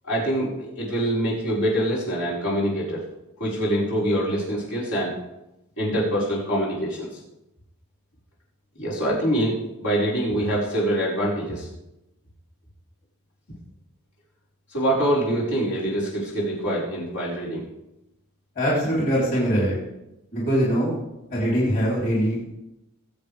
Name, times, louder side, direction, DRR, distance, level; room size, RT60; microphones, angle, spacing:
voice 1, 0.0-3.0 3.4-5.2 5.8-7.1 8.8-11.7 14.7-17.6, right 1 dB, 75° left, -7 dB, 5.5 m, -25 dB
voice 2, 18.6-19.8 20.3-21.0 21.3-22.5, equal, 40° left, -5 dB, 3.9 m, -22 dB
20.5 x 8.1 x 3.6 m, 0.90 s
head